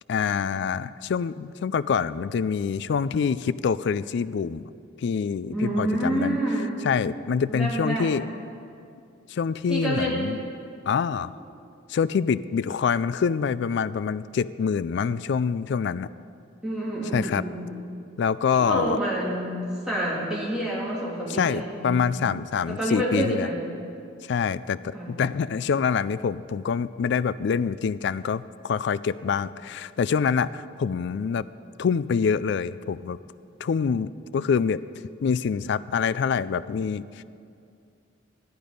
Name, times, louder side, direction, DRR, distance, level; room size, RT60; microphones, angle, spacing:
voice 1, 0.1-4.6 5.0-6.4 6.8-8.2 9.3-10.4 10.9-11.3 11.9-16.1 17.1-17.4 18.2-19.0 21.3-23.5 24.3-31.5 31.8-33.2 33.6-34.8 35.2-37.2, left 6 dB, 60° left, 16 dB, 0.3 m, -26 dB
voice 2, 5.5-6.7 7.5-8.1 9.7-10.3 16.6-17.7 18.6-22.1 22.7-23.6 24.9-25.1, right 1 dB, 5° right, -7 dB, 2.8 m, -28 dB
13.5 x 11.0 x 5.1 m, 2.5 s
head